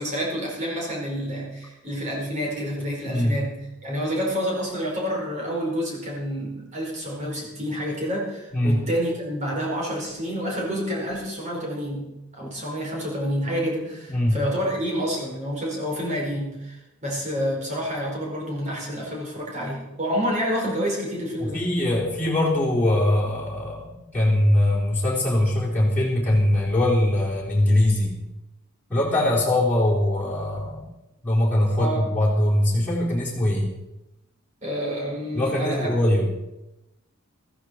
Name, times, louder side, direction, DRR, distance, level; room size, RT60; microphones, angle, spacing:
voice 1, 0.0-21.6 31.7-32.0 34.6-35.9, equal, 35° right, -2 dB, 4.8 m, -28 dB
voice 2, 3.1-3.4 8.5-8.8 14.1-14.4 21.4-23.9 24.1-28.1 28.9-30.8 31.2-33.7 35.3-36.3, left 1 dB, 10° left, -7 dB, 3.9 m, -22 dB
15.0 x 14.5 x 4.6 m, 0.94 s
head